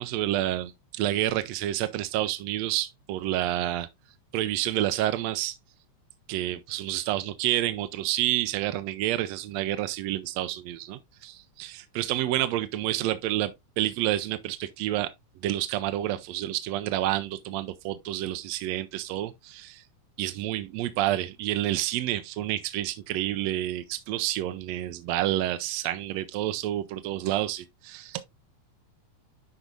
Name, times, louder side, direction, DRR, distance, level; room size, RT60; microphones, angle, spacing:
voice 1, 0.0-3.9 4.3-5.6 6.3-15.1 15.4-19.8 20.2-28.2, right 14 dB, 75° right, 1.7 m, -29 dB
12.0 x 4.6 x 2.5 m
omnidirectional pair, 3.4 m